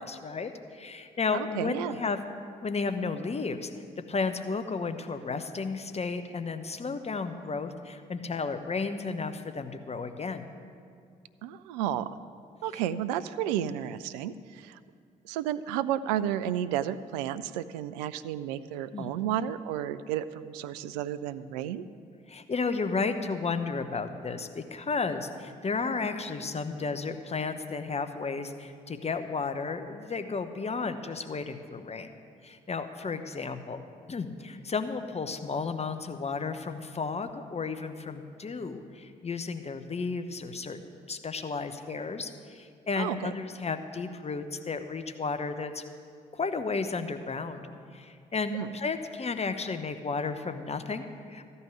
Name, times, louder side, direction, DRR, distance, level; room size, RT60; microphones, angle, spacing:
voice 1, 0.0-2.2 2.6-3.7 4.1-10.5 18.9-19.2 22.3-32.1 32.4-33.8 34.1-45.8 46.3-47.7 47.9-51.4, left 4 dB, 30° left, 9 dB, 0.9 m, -33 dB
voice 2, 1.3-2.0 11.4-12.1 12.6-14.8 15.2-21.9 43.0-43.3 48.5-48.7, right 11 dB, 75° right, 14 dB, 0.4 m, -32 dB
13.5 x 5.5 x 9.3 m, 2.3 s
figure-of-eight pair, 40°, 21 cm